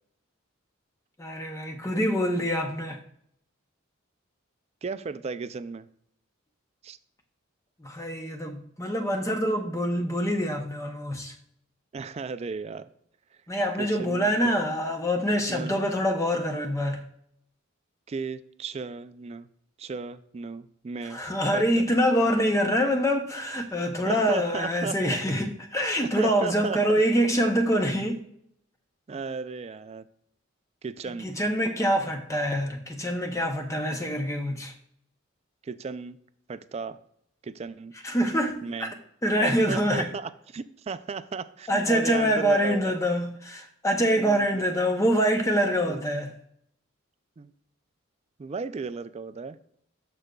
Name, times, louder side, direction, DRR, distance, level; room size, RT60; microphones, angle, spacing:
voice 1, 1.2-3.0 7.8-11.3 13.5-17.0 21.1-28.2 31.2-34.7 38.0-38.9 39.2-40.1 41.7-46.3, equal, 15° left, 0.6 m, -25 dB
voice 2, 4.8-5.9 6.8-7.0 11.9-12.9 13.8-14.5 15.5-15.7 18.1-19.5 19.8-21.2 21.5-21.9 24.1-24.9 26.2-26.8 29.1-30.0 30.8-31.3 35.6-36.2 36.5-37.0 37.4-37.9 38.6-38.9 39.4-43.0 44.2-44.6 45.9-46.0 47.4-47.5 48.4-49.6, right 4 dB, 30° right, 0.3 m, -35 dB
13.0 x 5.0 x 2.3 m
head